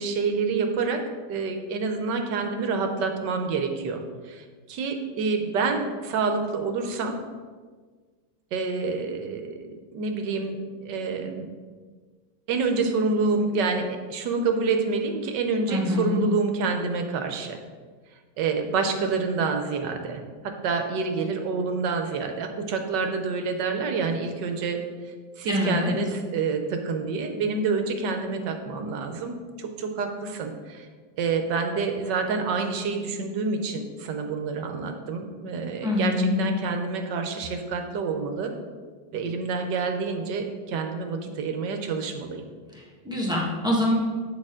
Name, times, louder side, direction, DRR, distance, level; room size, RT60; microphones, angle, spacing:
voice 1, 0.0-7.2 8.5-11.5 12.5-17.6 18.4-24.8 25.4-30.9 31.2-38.5 39.1-42.4, right 4 dB, 70° right, 5 dB, 1.3 m, -28 dB
voice 2, 15.7-16.2 25.5-25.9 35.8-36.4 42.7-43.9, left 1 dB, ahead, -4 dB, 1.3 m, -25 dB
9.1 x 6.5 x 3.7 m, 1.5 s
omnidirectional pair, 2.1 m